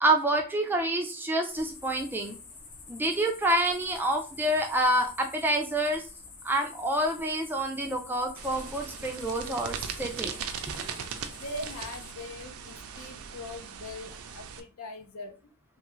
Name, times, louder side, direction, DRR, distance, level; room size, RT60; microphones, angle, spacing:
voice 1, 0.0-2.4 2.9-6.1 6.4-10.3 10.8-10.9, right 1 dB, 10° right, 3 dB, 0.3 m, -27 dB
sound 1, 1.5-12.1, left 4 dB, 35° left, 0.6 m, -48 dB
sound 2, 8.3-14.6, right 7 dB, 80° right, 0.4 m, -39 dB
voice 2, 11.4-15.3, left 2 dB, 80° left, 5 dB, 0.6 m, -41 dB
3.2 x 2.3 x 3.0 m, 0.34 s
head